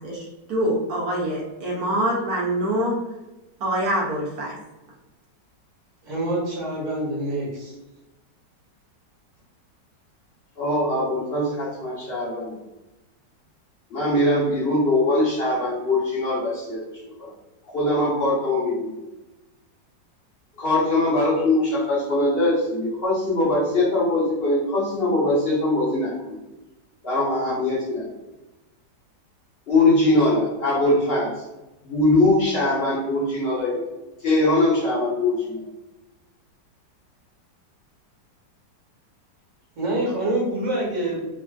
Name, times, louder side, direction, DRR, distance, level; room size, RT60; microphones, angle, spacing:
voice 1, 0.0-3.0 3.6-4.6, right 1 dB, 65° right, -4 dB, 1.1 m, -25 dB
voice 2, 6.0-7.7 39.7-41.2, right 1 dB, 50° right, -5 dB, 1.3 m, -26 dB
voice 3, 10.6-12.5 13.9-16.8 17.2-17.3 17.7-18.9 20.6-26.1 27.0-28.1 29.7-31.3 31.8-33.9 34.2-35.6, left 2 dB, 45° left, -6 dB, 0.9 m, -21 dB
3.2 x 2.4 x 2.3 m, 1.0 s
omnidirectional pair, 1.9 m